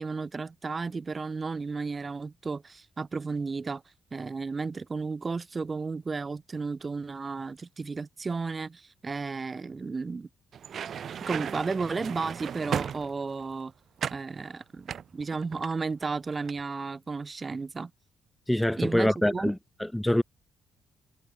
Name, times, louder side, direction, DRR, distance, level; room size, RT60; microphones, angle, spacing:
voice 1, 0.0-3.8 4.1-10.3 11.2-13.7 14.1-17.9 18.8-19.5, right 4 dB, 30° right, 1.0 m, -33 dB
sound 1, 10.5-13.5 14.0-14.3 14.9-16.1 16.3-16.6, right 8 dB, 55° right, 1.4 m, -35 dB
voice 2, 18.5-20.2, left 1 dB, 5° left, 0.5 m, -25 dB
cardioid pair, 90°, 0 cm